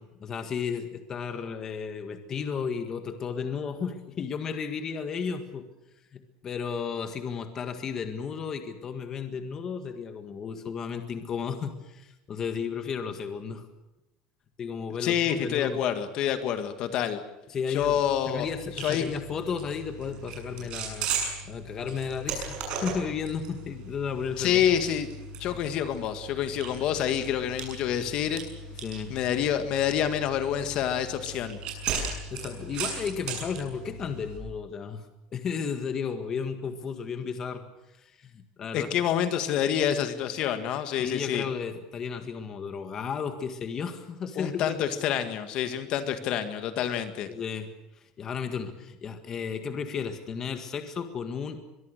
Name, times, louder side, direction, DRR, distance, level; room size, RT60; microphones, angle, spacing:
voice 1, 0.0-5.7 6.1-13.6 14.6-15.8 17.5-21.1 21.4-24.6 25.4-25.6 28.8-29.1 32.3-35.0 35.3-37.6 37.9-38.9 41.0-44.9 47.3-47.7 48.2-51.6, left 6 dB, 25° left, 7 dB, 1.8 m, -34 dB
voice 2, 15.0-17.2 17.7-18.5 18.8-19.0 24.4-25.1 25.4-28.4 29.1-31.6 38.7-41.4 44.4-47.3, left 9 dB, 45° left, 9 dB, 1.8 m, -27 dB
sound 1, 17.8-34.4, right 4 dB, 45° right, 7.1 m, -37 dB
23.0 x 23.0 x 6.7 m, 0.96 s
cardioid pair, 170°, 2 cm